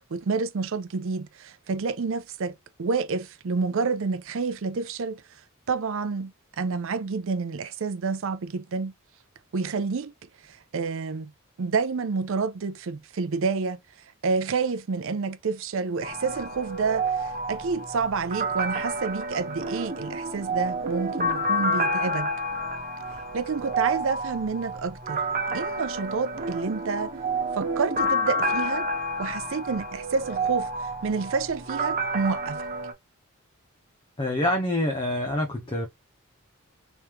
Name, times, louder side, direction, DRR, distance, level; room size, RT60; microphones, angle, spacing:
voice 1, 0.1-5.2 5.7-8.9 9.5-10.1 10.5-11.3 11.6-13.8 14.2-22.3 23.3-25.2 25.5-27.1 27.5-28.8 29.2-30.7 31.0-32.6, right 4 dB, 60° right, 0.5 m, -29 dB
sound 1, 16.0-32.9, right 1 dB, 40° right, 1.0 m, -29 dB
voice 2, 34.2-35.9, left 1 dB, 25° left, 0.6 m, -26 dB
3.5 x 3.1 x 3.0 m
head